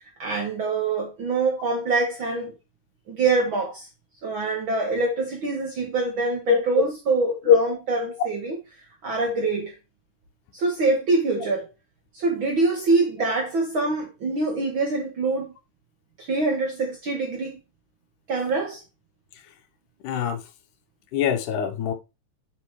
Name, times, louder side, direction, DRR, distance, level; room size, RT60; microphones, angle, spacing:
voice 1, 0.2-2.5 3.1-3.9 4.2-8.6 9.0-9.7 10.5-11.7 12.1-15.5 16.2-17.6 18.3-18.8, right 3 dB, 60° right, 1.4 m, -25 dB
voice 2, 20.0-20.4 21.1-21.9, left 8 dB, 75° left, 2.3 m, -21 dB
8.1 x 4.5 x 3.1 m
omnidirectional pair, 3.7 m